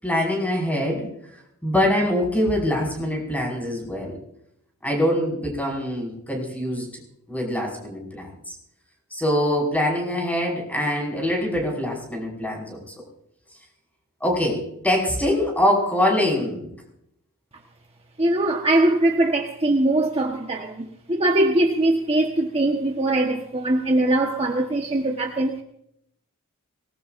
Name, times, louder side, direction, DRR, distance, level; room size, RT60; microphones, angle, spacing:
voice 1, 0.0-1.1 1.6-4.2 4.8-6.9 7.3-8.3 9.1-12.8 14.2-16.7, left 1 dB, 5° left, 5.5 m, -24 dB
voice 2, 18.2-25.6, right 1 dB, 30° right, 1.3 m, -21 dB
25.0 x 20.0 x 2.6 m
head